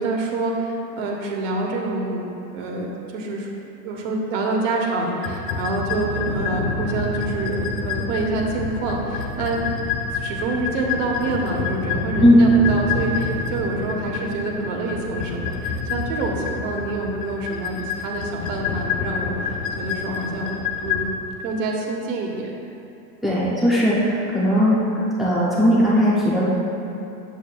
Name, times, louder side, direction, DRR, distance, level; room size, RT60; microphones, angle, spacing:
voice 1, 0.0-3.5 3.8-9.7 10.1-20.5 20.8-22.5, right 2 dB, 50° right, 0 dB, 1.3 m, -27 dB
sound 1, 5.2-21.1, left 4 dB, 70° left, 0.9 m, -28 dB
voice 2, 23.2-24.8 25.2-26.5, equal, ahead, -10 dB, 0.3 m, -18 dB
9.4 x 7.2 x 2.3 m, 2.9 s
supercardioid pair, 140°, 48 cm